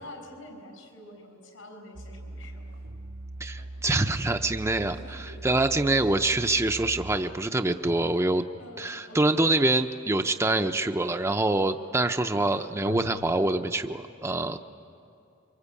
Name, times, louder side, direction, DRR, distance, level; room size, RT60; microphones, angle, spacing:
voice 1, 0.0-2.6 5.0-5.4 8.6-9.5, left 1 dB, 85° left, 5 dB, 5.5 m, -47 dB
sound 1, 1.4-1.5 2.4-6.1 7.8-9.0 12.8-13.5, left 1 dB, 90° right, 1.7 m, -44 dB
sound 2, 1.9-7.2, right 1 dB, 65° right, 1.1 m, -41 dB
voice 2, 3.4-8.4 8.8-14.6, right 2 dB, 15° right, 6 dB, 0.5 m, -25 dB
26.0 x 24.0 x 8.4 m, 2.6 s
head